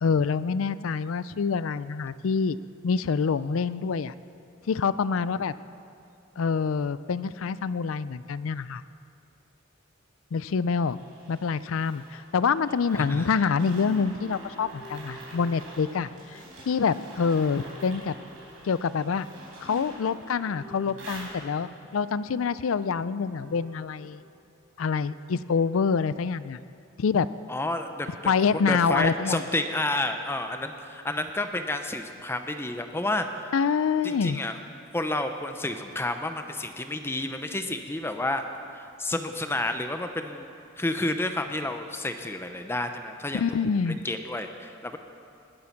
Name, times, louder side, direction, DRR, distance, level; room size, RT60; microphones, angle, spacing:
voice 1, 0.0-2.6 2.8-4.1 4.7-5.5 6.4-8.8 10.3-11.0 11.3-16.4 16.7-18.1 18.6-19.3 19.6-24.2 24.8-26.6 27.0-27.3 28.3-29.4 33.5-34.4 43.3-44.0, left 5 dB, 85° left, 16 dB, 0.4 m, -26 dB
sound 1, 10.8-21.8, right 2 dB, 90° right, 4.2 m, -47 dB
sound 2, 12.9-24.6, left 2 dB, 65° left, 4.4 m, -49 dB
voice 2, 12.9-13.3 27.5-28.3 28.6-33.5 34.0-34.6 34.9-38.4 38.7-40.5 40.8-43.6 43.8-45.0, left 2 dB, 10° left, 7 dB, 0.7 m, -30 dB
20.0 x 9.5 x 5.9 m, 2.5 s
head